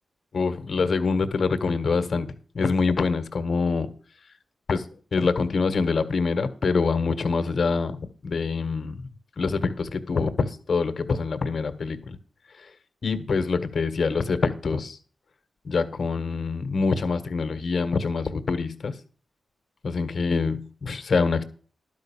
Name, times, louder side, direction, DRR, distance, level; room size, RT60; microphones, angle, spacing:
voice 1, 0.3-2.3 2.5-3.9 4.7-8.0 8.2-9.1 9.4-12.1 13.0-15.0 15.6-18.9 19.8-21.4, left 4 dB, 60° left, 1.5 m, -25 dB
11.5 x 5.4 x 7.2 m
cardioid pair, 65°, 0 cm